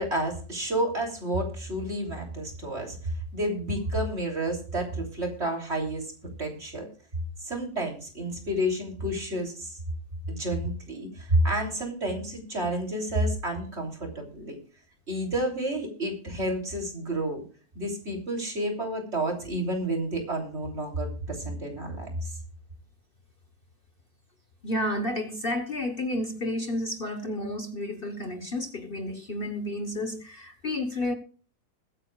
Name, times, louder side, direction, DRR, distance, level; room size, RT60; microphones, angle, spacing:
voice 1, 0.0-6.1 6.4-6.9 7.4-9.8 10.3-14.6 15.1-17.4 17.8-22.3, right 1 dB, 45° right, 3.5 m, -30 dB
voice 2, 24.6-31.1, left 1 dB, 40° left, 1.2 m, -31 dB
21.5 x 9.0 x 2.4 m
omnidirectional pair, 1.6 m